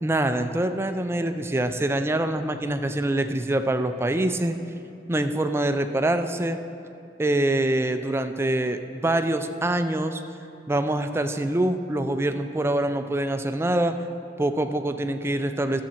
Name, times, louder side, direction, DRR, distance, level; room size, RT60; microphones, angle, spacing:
voice 1, 0.0-4.6 5.1-6.6 7.2-10.2 10.7-14.0 14.4-15.8, right 1 dB, 15° right, 8 dB, 0.4 m, -25 dB
13.0 x 7.3 x 4.4 m, 2.7 s
head